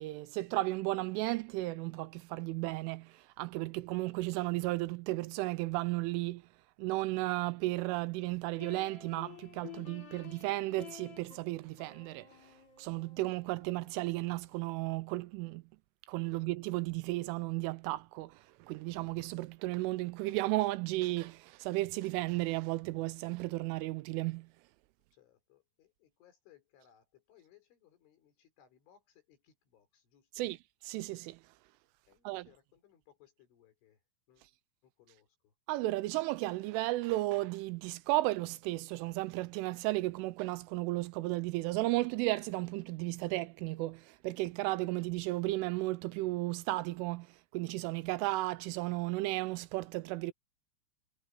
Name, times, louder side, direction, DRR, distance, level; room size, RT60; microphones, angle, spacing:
voice 1, 0.0-6.4 6.8-12.3 12.8-15.6 16.1-24.5 30.4-30.6 30.9-31.4 32.3-32.5 35.7-50.3, right 19 dB, 85° right, 3.0 m, -34 dB
sound 1, 8.6-14.6, left 10 dB, 45° left, 7.4 m, -52 dB
voice 2, 25.1-30.5 32.1-34.0 34.3-34.5 34.8-35.5, left 10 dB, 70° left, 6.6 m, -65 dB
omnidirectional pair, 5.8 m